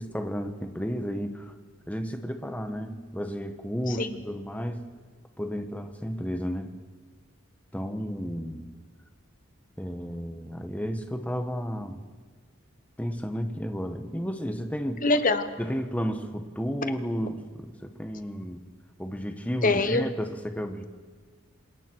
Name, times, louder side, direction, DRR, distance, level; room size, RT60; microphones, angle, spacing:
voice 1, 0.0-1.5 1.9-4.8 5.4-6.7 7.7-8.7 9.8-12.0 13.0-15.0 15.6-18.6 19.0-20.8, equal, 5° left, 6 dB, 1.3 m, -32 dB
voice 2, 15.0-15.5 19.6-20.1, left 2 dB, 40° left, 10 dB, 1.1 m, -23 dB
27.5 x 20.0 x 4.6 m, 1.5 s
head